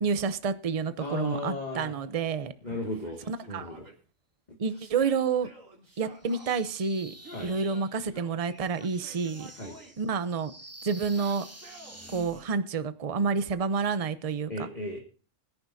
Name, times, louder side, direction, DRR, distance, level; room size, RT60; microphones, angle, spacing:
voice 1, 0.0-2.5 3.3-3.7 4.6-5.5 6.0-7.1 7.4-9.5 10.0-10.5 10.8-11.5 12.1-14.5, right 5 dB, 35° right, 0.7 m, -29 dB
voice 2, 1.0-1.9 2.6-3.2 3.5-3.8 7.3-7.5 9.6-9.8 14.5-15.0, left 1 dB, 35° left, 2.1 m, -35 dB
Yell, 2.6-3.9 4.7-6.5 7.2-8.4 8.7-10.0 11.0-12.0, right 1 dB, 85° right, 3.2 m, -52 dB
sound 1, 6.2-12.5, right 1 dB, 10° right, 1.4 m, -49 dB
22.0 x 10.5 x 2.7 m
omnidirectional pair, 1.3 m